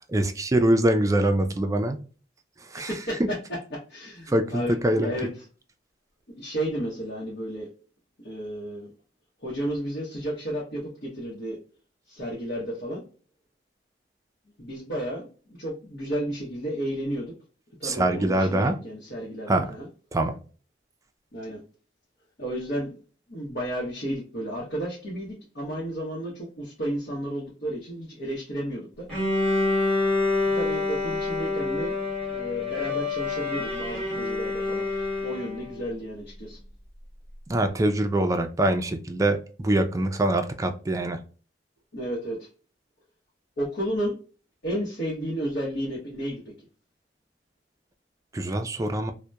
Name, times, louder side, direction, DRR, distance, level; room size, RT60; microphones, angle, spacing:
voice 1, 0.1-2.0 2.7-2.9 4.3-5.3 17.8-18.8 19.5-19.6 20.1-20.3 37.5-41.2 48.3-49.1, right 1 dB, 20° right, 0.3 m, -24 dB
voice 2, 2.8-5.3 6.4-7.7 8.2-8.9 9.4-11.6 12.1-13.0 14.6-15.3 15.6-17.3 17.8-19.9 21.3-21.6 22.4-23.0 23.3-29.1 30.5-31.9 32.3-34.8 35.2-36.6 41.9-42.5 43.6-44.2 44.6-46.5, equal, 65° left, 0.9 m, -32 dB
Bowed string instrument, 29.1-35.8, left 3 dB, 5° left, 1.2 m, -27 dB
2.8 x 2.1 x 2.2 m
head